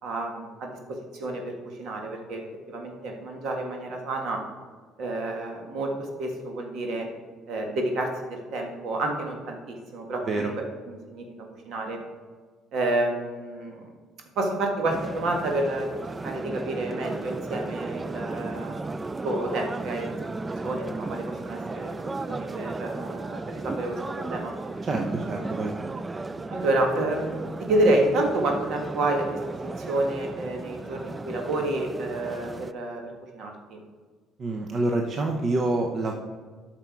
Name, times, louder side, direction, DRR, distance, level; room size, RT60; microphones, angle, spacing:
voice 1, 0.0-4.4 5.0-7.1 7.5-12.0 12.7-13.9 14.3-15.9 16.2-20.2 20.6-24.5 26.5-33.8, right 2 dB, 65° right, 2 dB, 1.6 m, -29 dB
sound 1, 14.9-32.7, right 3 dB, 20° right, 0.3 m, -35 dB
voice 2, 24.8-26.0 34.4-36.1, right 2 dB, 45° right, 2 dB, 0.8 m, -27 dB
8.8 x 6.0 x 4.7 m, 1.5 s
supercardioid pair, 85°, 0 cm